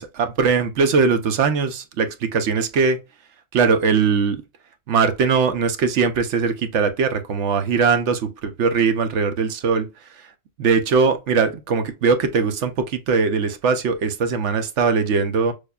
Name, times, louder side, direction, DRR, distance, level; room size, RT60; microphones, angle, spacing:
voice 1, 0.0-3.0 3.5-4.4 4.9-8.3 8.6-9.9 10.6-15.5, right 5 dB, 70° right, 0.9 m, -20 dB
6.4 x 2.2 x 2.3 m
omnidirectional pair, 1.3 m